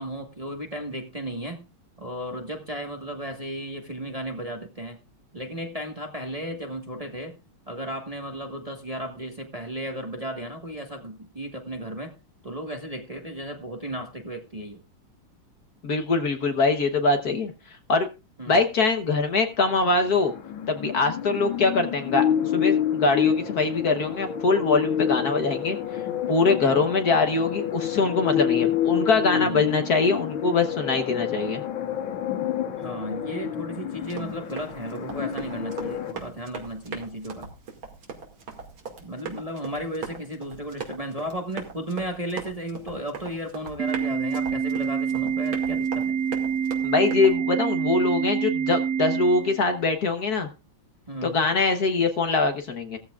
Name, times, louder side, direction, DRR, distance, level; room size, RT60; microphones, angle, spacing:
voice 1, 0.0-1.6 2.0-5.0 5.3-7.4 7.7-12.1 12.4-14.8 18.4-18.6 29.3-29.7 32.8-37.5 39.0-46.2 51.1-51.4, right 1 dB, 20° right, 3 dB, 1.3 m, -34 dB
voice 2, 15.8-18.1 18.5-20.3 20.7-22.2 22.5-26.0 26.3-31.6 46.8-50.5 51.2-53.0, left 3 dB, 55° left, 6 dB, 1.5 m, -23 dB
sound 1, 19.8-36.1, left 9 dB, 75° left, 2.0 m, -28 dB
Run, 34.0-47.4, right 5 dB, 75° right, 3.0 m, -40 dB
Organ, 43.8-49.8, right 7 dB, 50° right, 1.7 m, -26 dB
16.5 x 14.0 x 2.4 m, 0.29 s
omnidirectional pair, 2.2 m